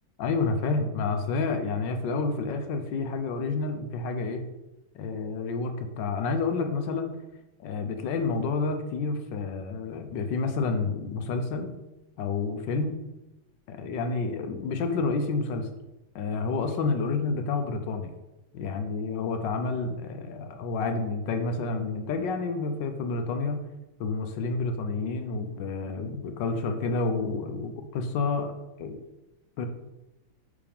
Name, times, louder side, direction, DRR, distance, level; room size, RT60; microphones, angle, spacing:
voice 1, 0.2-4.4 4.9-7.1 7.6-11.7 12.2-13.0 13.7-15.7 16.1-18.1 18.5-23.6 24.0-28.5 28.8-29.0 29.6-29.7, left 4 dB, 70° left, 7 dB, 1.3 m, -29 dB
5.9 x 5.0 x 5.2 m, 1.0 s
omnidirectional pair, 2.2 m